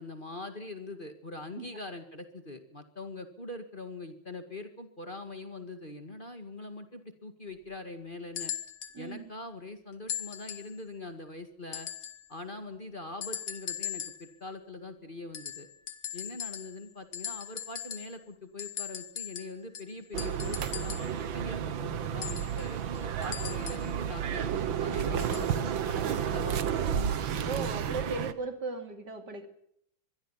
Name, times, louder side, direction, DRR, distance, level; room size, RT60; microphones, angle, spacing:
voice 1, 0.0-8.5 9.0-11.9 12.3-15.7 16.1-27.2, left 2 dB, 25° left, 7 dB, 2.1 m, -43 dB
sound 1, 8.4-9.0 10.1-10.8 11.7-12.3 13.2-14.3 15.3-16.9 17.1-18.2 18.6-21.2 22.2-23.9 25.2-25.5 26.4-26.5, left 9 dB, 80° left, 2.4 m, -39 dB
voice 2, 8.9-9.3 27.4-29.5, right 3 dB, 60° right, 7 dB, 3.2 m, -37 dB
sound 2, 20.1-28.3, right 8 dB, 80° right, 2.0 m, -31 dB
24.5 x 22.5 x 5.8 m, 0.70 s
omnidirectional pair, 2.1 m